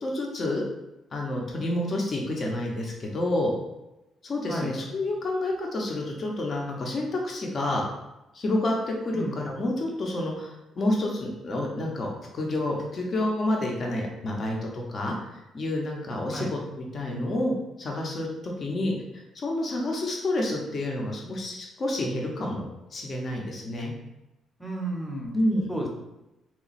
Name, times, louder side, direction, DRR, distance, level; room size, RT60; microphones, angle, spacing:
voice 1, 0.0-0.6 1.1-3.5 4.2-7.8 8.3-18.3 18.6-22.6 22.9-23.9 25.3-25.7, left 1 dB, 40° left, 0 dB, 0.7 m, -29 dB
voice 2, 24.6-25.4 25.7-25.9, right 1 dB, 5° left, -1 dB, 0.8 m, -32 dB
3.0 x 2.2 x 4.1 m, 0.95 s
cardioid pair, 105°, 0 cm